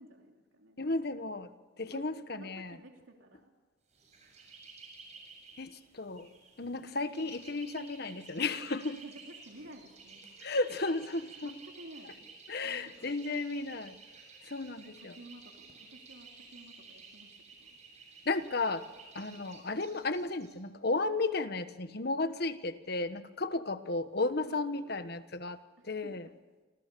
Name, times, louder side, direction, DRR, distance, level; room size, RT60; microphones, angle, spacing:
voice 1, 0.0-1.1 1.9-3.5 6.6-6.7 7.0-7.1 9.0-10.3 11.4-12.2 12.6-13.1 14.8-17.3 17.6-17.8 24.5-25.2 25.8-26.3, right 1 dB, 85° right, 2 dB, 3.1 m, -53 dB
voice 2, 0.8-1.5 1.8-2.8 5.6-6.3 6.6-9.0 10.4-11.5 12.5-14.0 14.4-15.1 18.2-18.8 19.1-25.6 25.8-26.3, left 3 dB, 55° left, 11 dB, 1.3 m, -34 dB
sound 1, 3.9-20.5, right 4 dB, 35° right, 7.6 m, -54 dB
28.5 x 26.5 x 6.9 m, 1.3 s
head